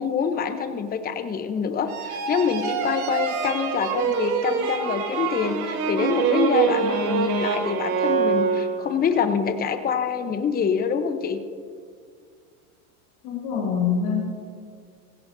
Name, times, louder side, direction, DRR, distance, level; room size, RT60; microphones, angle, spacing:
voice 1, 0.0-11.4, left 6 dB, 20° left, 8 dB, 0.8 m, -25 dB
sound 1, 1.9-9.1, right 6 dB, 70° right, 1.9 m, -25 dB
voice 2, 13.2-14.2, left 6 dB, 60° left, -3 dB, 3.8 m, -24 dB
16.5 x 16.0 x 2.7 m, 2.1 s
supercardioid pair, 115°, 42 cm